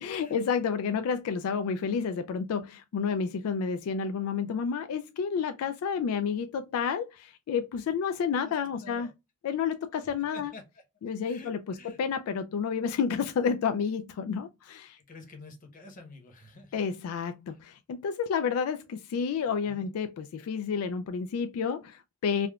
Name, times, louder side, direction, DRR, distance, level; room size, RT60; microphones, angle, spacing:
voice 1, 0.0-9.1 9.4-10.5 11.0-15.0 16.7-22.5, left 6 dB, 80° left, 0.3 m, -30 dB
voice 2, 8.4-9.1 10.0-10.6 11.2-12.0 15.1-16.9 17.5-17.6 19.4-19.9, left 3 dB, 40° left, 1.0 m, -49 dB
3.5 x 2.3 x 2.2 m
head